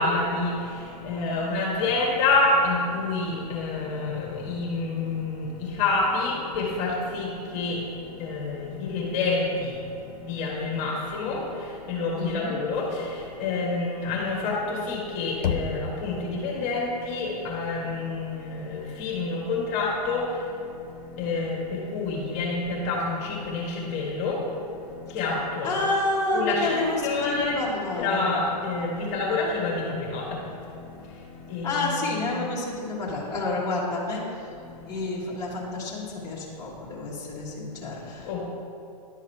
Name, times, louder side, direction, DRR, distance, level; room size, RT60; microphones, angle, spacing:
voice 1, 0.0-25.8 26.3-31.9 32.2-32.5 34.5-35.1 36.2-36.3 36.9-37.0 38.1-38.4, left 3 dB, 35° left, -3 dB, 1.6 m, -28 dB
voice 2, 12.1-12.6 25.1-25.2 25.6-28.4 31.6-34.4 34.9-38.3, left 2 dB, 15° left, -7 dB, 1.6 m, -29 dB
Knock, 15.4-16.3, left 6 dB, 70° left, 0.7 m, -29 dB
11.0 x 4.7 x 4.5 m, 2.6 s
hypercardioid pair, 130°, 21 cm